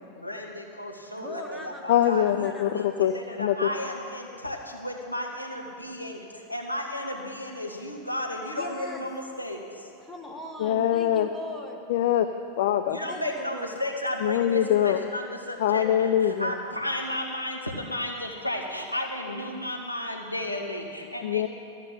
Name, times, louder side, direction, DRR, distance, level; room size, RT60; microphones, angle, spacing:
voice 1, 0.2-2.3 2.7-6.2 6.5-9.6 12.9-21.4, left 1 dB, 90° left, 0 dB, 1.4 m, -33 dB
voice 2, 1.2-3.3 8.6-9.1 10.0-11.8 13.1-13.8, left 1 dB, 5° left, 0 dB, 1.7 m, -41 dB
voice 3, 1.9-3.6 10.6-11.3 11.9-12.3 12.6-13.0 14.2-15.0 15.6-16.5 21.2-21.5, left 11 dB, 55° left, 9 dB, 0.4 m, -23 dB
13.5 x 6.6 x 9.2 m, 2.4 s
figure-of-eight pair, 90°, 0 cm